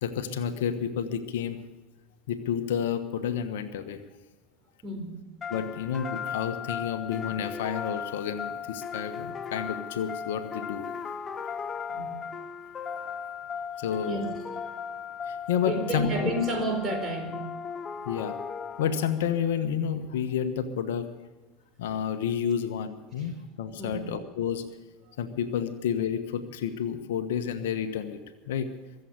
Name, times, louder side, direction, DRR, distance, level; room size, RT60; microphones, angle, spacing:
voice 1, 0.0-1.6 2.3-4.0 5.5-10.8 13.8-14.2 15.3-16.3 18.0-18.4 18.8-21.1 21.8-24.6 25.2-28.2 28.5-28.7, left 8 dB, 65° left, 9 dB, 1.2 m, -30 dB
voice 2, 4.8-5.2 8.9-9.0 11.9-12.2 13.7-14.2 15.7-17.4 23.2-23.3 23.8-24.1, right 1 dB, 35° right, 4 dB, 4.4 m, -32 dB
sound 1, 5.4-19.3, left 7 dB, 30° left, 0.7 m, -37 dB
23.0 x 7.9 x 6.8 m, 1.3 s
figure-of-eight pair, 80°, 0 cm